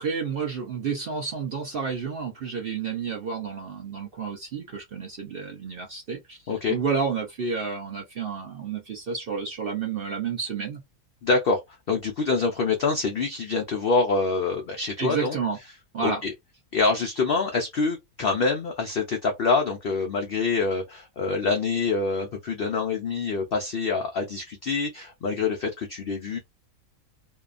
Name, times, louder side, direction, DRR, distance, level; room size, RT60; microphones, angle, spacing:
voice 1, 0.0-6.4 6.7-10.8 15.0-15.6 15.9-16.2, right 5 dB, 55° right, 0.6 m, -30 dB
voice 2, 11.2-11.6 11.9-15.4 16.0-16.3 16.7-26.4, left 4 dB, 85° left, 0.5 m, -25 dB
2.7 x 2.2 x 2.4 m
omnidirectional pair, 1.6 m